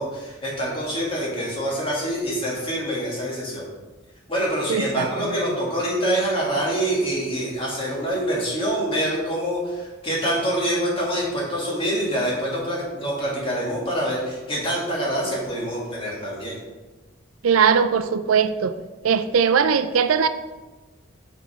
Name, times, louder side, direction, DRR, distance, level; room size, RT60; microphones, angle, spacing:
voice 1, 0.0-3.6 4.3-16.6, right 1 dB, 25° left, -5 dB, 2.1 m, -25 dB
voice 2, 4.7-5.4 17.4-18.7 19.0-20.3, right 6 dB, 90° right, 10 dB, 0.5 m, -20 dB
6.1 x 5.4 x 4.9 m, 1.2 s
head